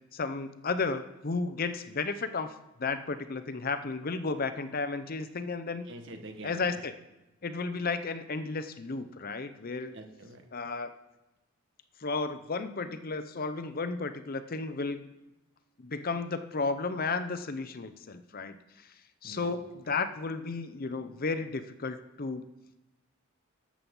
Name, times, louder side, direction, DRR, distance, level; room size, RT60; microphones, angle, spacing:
voice 1, 0.1-2.5 2.8-5.9 6.4-6.9 7.4-9.9 10.5-10.9 12.0-15.1 15.8-18.6 19.2-22.4, left 4 dB, 45° left, 11 dB, 0.7 m, -33 dB
voice 2, 5.8-6.8 9.9-10.4 19.2-19.8, right 1 dB, 60° right, 5 dB, 1.6 m, -46 dB
13.0 x 7.5 x 5.5 m, 0.97 s
head